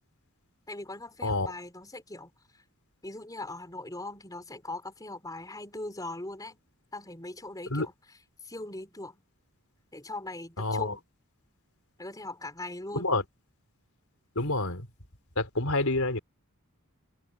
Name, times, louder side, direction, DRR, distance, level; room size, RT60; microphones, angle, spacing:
voice 1, 0.7-2.6 3.0-6.6 6.9-8.2 8.4-9.2 9.9-11.0 12.0-13.1, left 2 dB, 15° left, 4.2 m, -40 dB
voice 2, 10.6-10.9 12.9-13.2 14.4-14.9 15.4-16.2, left 2 dB, 75° left, 4.2 m, -28 dB
open air
head